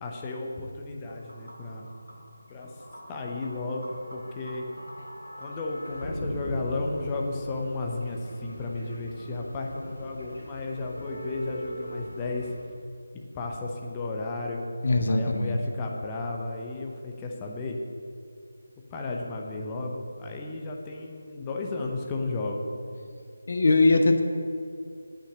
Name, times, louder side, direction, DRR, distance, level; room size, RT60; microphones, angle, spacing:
voice 1, 0.0-1.9 2.5-2.7 3.1-4.6 5.4-12.5 13.3-14.7 15.1-17.8 18.9-22.7, left 2 dB, 15° left, 0 dB, 0.8 m, -33 dB
sound 1, 1.0-12.6, equal, 85° left, 2.1 m, -41 dB
voice 2, 14.8-15.6 23.5-24.2, left 2 dB, 45° left, 6 dB, 0.8 m, -21 dB
8.9 x 5.7 x 8.1 m, 2.3 s
figure-of-eight pair, 160°, 0 cm